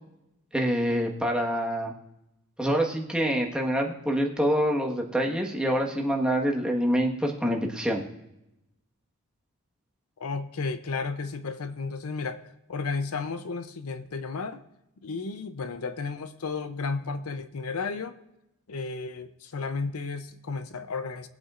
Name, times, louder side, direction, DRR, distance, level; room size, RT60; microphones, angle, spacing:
voice 1, 0.5-1.9 2.6-8.0, equal, 5° right, -1 dB, 1.4 m, -26 dB
voice 2, 10.2-14.6 15.0-18.2 18.7-21.3, left 4 dB, 70° left, 10 dB, 0.6 m, -33 dB
22.5 x 8.1 x 2.5 m, 0.89 s
head